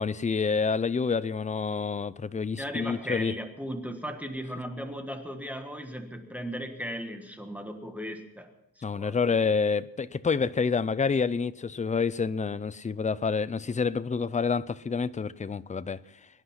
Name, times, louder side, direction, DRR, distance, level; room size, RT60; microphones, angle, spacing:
voice 1, 0.0-3.3 8.8-16.0, left 5 dB, 20° left, 0.5 m, -28 dB
voice 2, 2.6-9.2, equal, 5° right, 1.4 m, -37 dB
23.5 x 10.0 x 5.8 m
wide cardioid pair, 140°, 34 cm